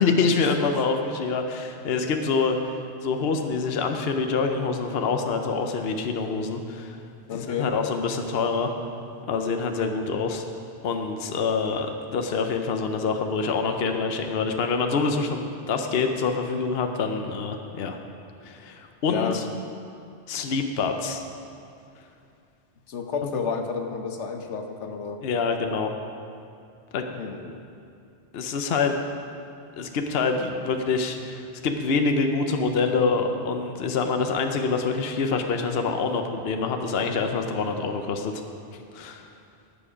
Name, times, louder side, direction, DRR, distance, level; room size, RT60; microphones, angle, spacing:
voice 1, 0.0-7.0 7.3-8.7 9.3-10.4 10.8-18.0 18.4-19.4 20.3-21.2 23.2-23.3 25.2-25.9 26.9-27.2 28.3-29.0 29.8-38.4 38.9-39.3, left 4 dB, 65° left, 5 dB, 1.0 m, -26 dB
voice 2, 7.3-7.7 19.1-19.4 22.9-25.2 27.1-27.6, left 6 dB, 90° left, 4 dB, 1.2 m, -31 dB
18.5 x 7.2 x 5.1 m, 2.5 s
omnidirectional pair, 1.2 m